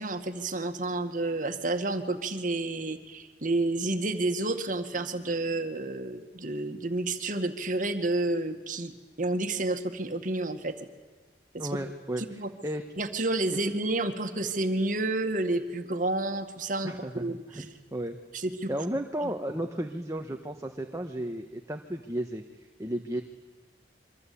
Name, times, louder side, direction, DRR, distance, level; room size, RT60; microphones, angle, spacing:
voice 1, 0.0-10.8 11.5-11.7 12.2-12.5 13.0-17.7 18.3-18.7 19.2-19.3, right 2 dB, 50° right, 7 dB, 2.0 m, -30 dB
voice 2, 11.6-12.8 13.6-13.7 16.8-18.2 18.7-23.2, right 1 dB, 20° right, 4 dB, 1.3 m, -34 dB
27.0 x 24.5 x 8.7 m, 1.3 s
head